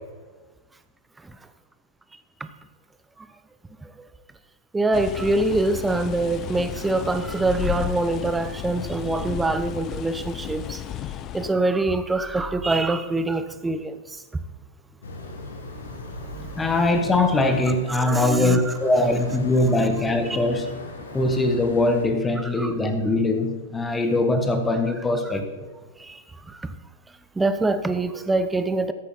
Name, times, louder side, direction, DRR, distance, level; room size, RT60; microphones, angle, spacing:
voice 1, 4.7-10.7 11.3-13.9 17.9-18.7 20.3-20.4 22.6-22.7 27.4-28.9, right 2 dB, 10° right, 11 dB, 0.8 m, -24 dB
sound 1, 4.9-11.5, left 11 dB, 30° left, 0.6 m, -33 dB
sound 2, 15.0-22.1, left 2 dB, 75° left, 2.1 m, -39 dB
voice 2, 16.6-20.8 21.1-25.7, left 2 dB, 10° left, 7 dB, 1.3 m, -22 dB
13.5 x 8.4 x 4.5 m, 1.3 s
hypercardioid pair, 110°, 0 cm